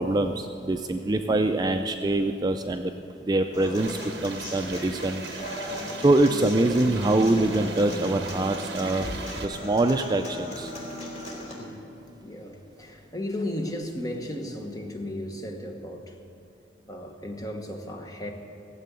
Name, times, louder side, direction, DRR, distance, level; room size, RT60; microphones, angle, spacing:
voice 1, 0.0-2.9 3.2-5.2 6.0-9.1 9.4-10.7, right 2 dB, 20° right, 6 dB, 0.4 m, -24 dB
Human voice / Acoustic guitar, 3.5-11.5, left 1 dB, 40° left, 2.9 m, -37 dB
sound 1, 3.8-9.5, right 4 dB, 70° right, 0.9 m, -40 dB
voice 2, 11.6-11.9 12.2-16.2 16.9-18.3, left 1 dB, 20° left, 2 dB, 1.2 m, -35 dB
16.5 x 7.6 x 8.2 m, 2.7 s
head